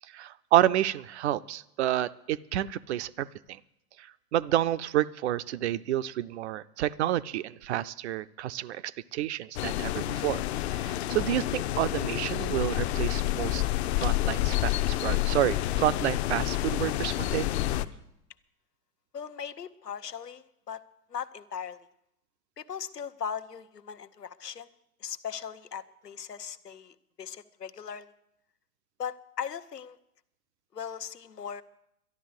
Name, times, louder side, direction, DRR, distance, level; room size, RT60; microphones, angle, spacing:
voice 1, 0.1-3.6 4.0-13.6 14.0-17.5, right 13 dB, 45° right, 16 dB, 0.5 m, -29 dB
sound 1, 9.5-17.8, left 15 dB, 45° left, 0.7 m, -29 dB
voice 2, 19.1-20.8 21.1-21.8 22.6-24.7 25.0-28.1 29.0-30.0 30.7-31.6, left 7 dB, 85° left, 11 dB, 0.9 m, -38 dB
12.0 x 11.5 x 7.9 m, 0.79 s
figure-of-eight pair, 100°, 47 cm